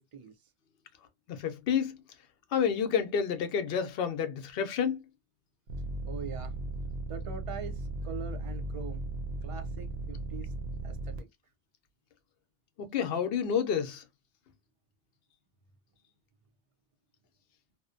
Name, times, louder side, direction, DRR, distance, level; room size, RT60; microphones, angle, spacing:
voice 1, 1.3-2.0 2.5-5.0 12.8-14.0, left 7 dB, 65° left, 0.7 m, -29 dB
sound 1, 5.7-11.2, right 2 dB, 70° right, 0.8 m, -37 dB
voice 2, 6.0-6.5 7.1-9.0 9.4-9.9 10.3-10.5 10.8-11.3, right 6 dB, 55° right, 0.3 m, -42 dB
2.6 x 2.1 x 2.4 m
omnidirectional pair, 1.1 m